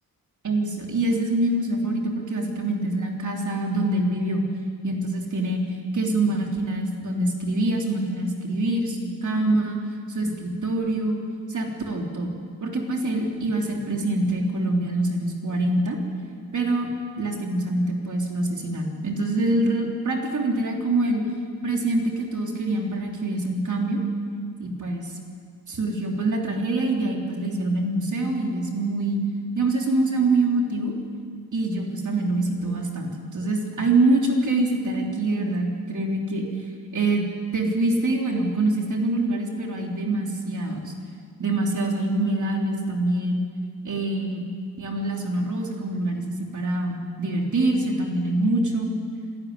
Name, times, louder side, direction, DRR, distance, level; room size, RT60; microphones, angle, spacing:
voice 1, 0.4-4.5 4.8-5.6 5.9-9.8 10.1-11.2 11.5-12.3 12.6-16.0 16.5-16.9 17.2-21.3 21.6-24.0 24.6-25.1 25.7-29.2 29.6-30.9 31.5-36.5 36.9-37.2 37.5-40.9 41.4-43.4 43.8-44.5 44.8-48.9, right 2 dB, 55° right, 1 dB, 3.4 m, -25 dB
26.5 x 12.5 x 9.6 m, 2.1 s
wide cardioid pair, 120°, 37 cm